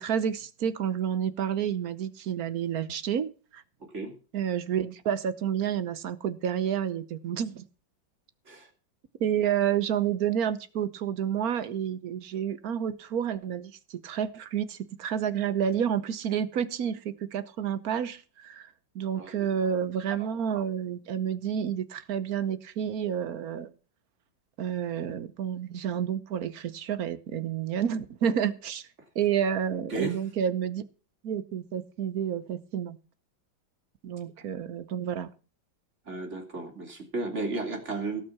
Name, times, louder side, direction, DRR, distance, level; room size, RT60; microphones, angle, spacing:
voice 1, 0.0-3.6 4.3-7.6 9.2-18.7 18.9-23.7 24.6-28.8 29.1-30.8 31.2-33.0 34.0-35.3, right 8 dB, 55° right, 14 dB, 1.2 m, -30 dB
voice 2, 19.2-19.5 29.9-30.2 36.1-38.2, right 2 dB, 35° right, 3 dB, 3.3 m, -34 dB
17.5 x 5.9 x 7.2 m, 0.37 s
omnidirectional pair, 2.1 m